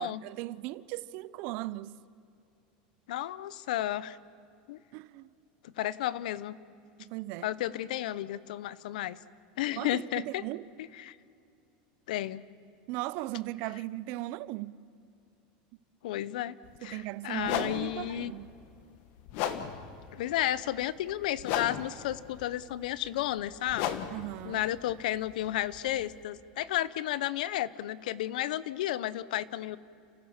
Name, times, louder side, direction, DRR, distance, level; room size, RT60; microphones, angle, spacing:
voice 1, 0.0-2.0 4.9-5.3 7.0-7.5 9.8-10.7 12.9-14.8 16.8-18.5 24.1-24.6, right 17 dB, 50° right, 0.6 m, -37 dB
voice 2, 3.1-4.2 4.7-4.8 5.6-6.6 7.4-9.2 9.6-10.4 10.8-11.2 12.1-12.4 16.0-18.3 20.1-24.0 24.4-29.8, left 13 dB, 80° left, 0.8 m, -33 dB
sound 1, 16.6-16.8 17.4-26.2, left 9 dB, 50° left, 1.4 m, -38 dB
30.0 x 15.0 x 7.3 m
supercardioid pair, 160°, 4 cm